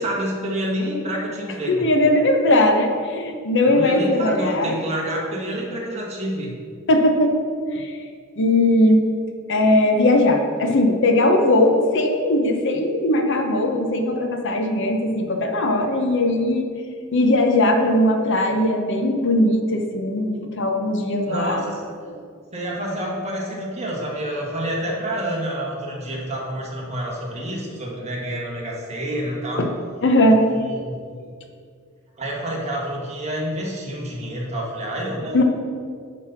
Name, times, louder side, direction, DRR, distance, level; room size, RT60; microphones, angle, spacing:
voice 1, 0.0-1.9 3.6-6.6 21.3-21.9 22.5-29.6 30.6-31.2 32.2-35.4, equal, 30° right, -3 dB, 1.8 m, -28 dB
voice 2, 1.7-4.7 6.9-7.3 7.7-7.9 8.4-9.0 9.5-16.7 17.1-21.6 29.6-29.7 30.0-30.4 35.3-35.4, left 1 dB, 60° left, 4 dB, 0.9 m, -19 dB
10.5 x 4.1 x 5.9 m, 2.1 s
head